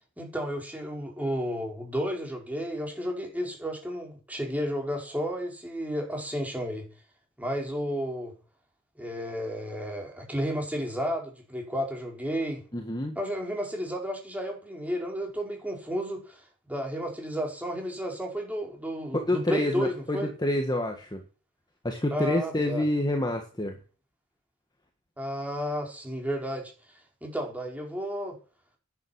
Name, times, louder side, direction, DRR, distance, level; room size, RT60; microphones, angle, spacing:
voice 1, 0.2-6.8 7.4-8.3 9.0-12.6 13.1-16.4 16.7-20.3 22.1-22.8 25.2-26.7 27.2-28.4, equal, 5° right, 1 dB, 5.0 m, -32 dB
voice 2, 12.7-13.1 19.3-21.2 21.8-23.8, left 1 dB, 20° left, 4 dB, 1.7 m, -28 dB
10.5 x 10.0 x 7.9 m, 0.36 s
head